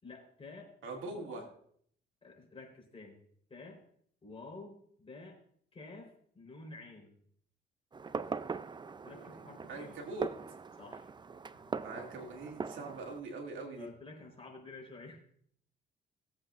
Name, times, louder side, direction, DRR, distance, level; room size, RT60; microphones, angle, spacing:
voice 1, 0.0-0.7 1.1-1.5 2.2-3.2 3.5-3.8 4.2-5.4 5.7-7.1 9.0-10.0 10.8-11.1 11.5-11.6 13.8-15.4, left 3 dB, 30° left, -1 dB, 4.1 m, -50 dB
voice 2, 0.8-1.5 9.0-10.3 11.8-13.9, right 2 dB, 75° right, 1 dB, 2.6 m, -43 dB
Fireworks, 7.9-13.2, right 5 dB, 25° right, 0.5 m, -41 dB
18.5 x 8.0 x 2.5 m, 0.62 s
cardioid pair, 90°, 20 cm